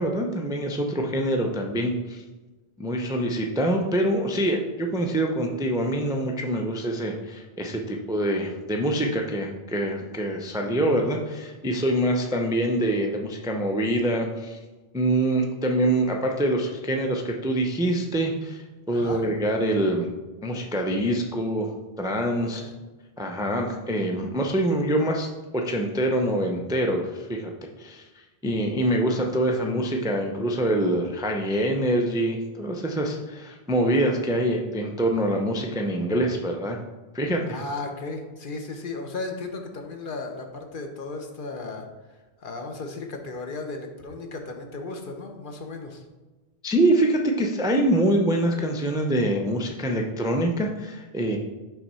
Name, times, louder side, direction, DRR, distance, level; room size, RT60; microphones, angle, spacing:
voice 1, 0.0-2.2 2.8-14.6 14.9-20.1 20.4-21.7 22.0-22.6 23.2-25.3 25.5-27.5 27.8-28.0 28.4-36.8 37.1-37.6 46.6-51.4, right 1 dB, 5° right, 2 dB, 0.4 m, -25 dB
voice 2, 18.9-19.2 22.6-22.7 37.5-41.9 42.4-46.0, left 3 dB, 55° left, 4 dB, 0.9 m, -35 dB
5.8 x 3.5 x 5.5 m, 1.2 s
omnidirectional pair, 1.1 m